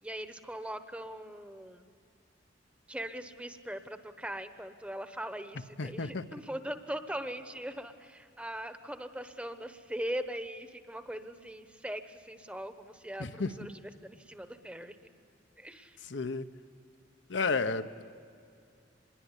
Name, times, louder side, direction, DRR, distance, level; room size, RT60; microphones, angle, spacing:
voice 1, 0.0-1.9 2.9-15.0 15.6-16.0, right 1 dB, 5° right, 9 dB, 1.0 m, -40 dB
voice 2, 5.8-6.2 13.2-13.5 16.1-16.5 17.3-18.0, left 4 dB, 75° left, 10 dB, 0.9 m, -32 dB
25.5 x 21.0 x 9.9 m, 2.4 s
head